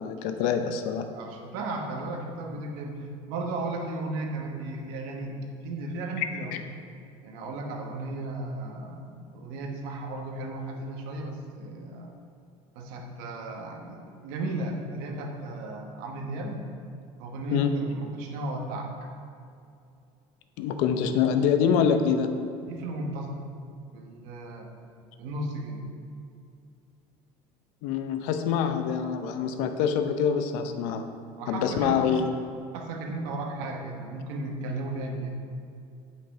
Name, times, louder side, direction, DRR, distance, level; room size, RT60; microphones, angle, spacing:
voice 1, 0.0-1.1 6.2-6.3 6.5-6.6 17.5-17.7 20.6-22.3 27.8-31.0 31.5-32.3, left 7 dB, 80° left, 7 dB, 0.7 m, -25 dB
voice 2, 1.1-6.6 7.2-12.1 12.7-16.6 17.2-19.1 22.7-23.4 23.9-24.7 25.2-25.8 31.4-32.0 32.7-35.3, right 2 dB, 85° right, 2 dB, 1.2 m, -35 dB
8.8 x 5.3 x 4.5 m, 2.5 s
cardioid pair, 130°, 13 cm